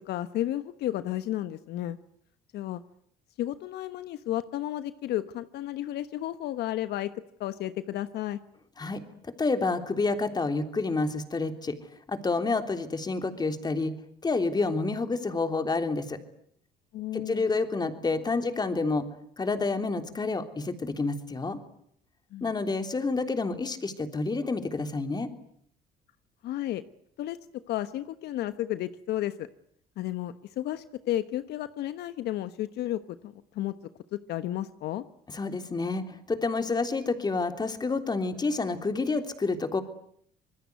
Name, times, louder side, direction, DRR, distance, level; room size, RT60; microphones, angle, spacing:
voice 1, 0.1-2.0 2.5-2.8 3.4-7.1 7.4-8.4 16.9-17.4 22.3-22.5 26.4-26.8 27.2-27.4 27.7-29.5 30.0-33.7 34.1-35.0, left 13 dB, 75° left, 12 dB, 1.2 m, -32 dB
voice 2, 9.4-11.7 12.1-13.9 14.2-16.2 17.1-19.0 19.4-21.6 22.4-25.3 35.3-36.0 36.3-39.8, left 3 dB, 25° left, 8 dB, 3.4 m, -29 dB
26.0 x 21.5 x 9.6 m, 0.67 s
cardioid pair, 110°, 17 cm